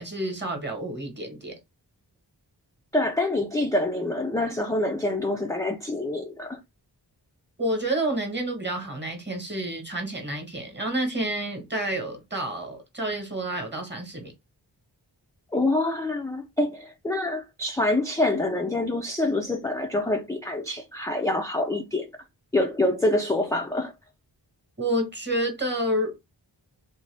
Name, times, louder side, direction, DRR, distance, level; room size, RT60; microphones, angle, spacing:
voice 1, 0.0-1.6 7.6-14.3 24.8-26.2, right 1 dB, 25° right, 1.1 m, -29 dB
voice 2, 2.9-6.6 15.5-22.1 22.5-23.9, left 2 dB, 10° left, 0.4 m, -26 dB
2.7 x 2.2 x 3.2 m
wide cardioid pair, 45°, 44 cm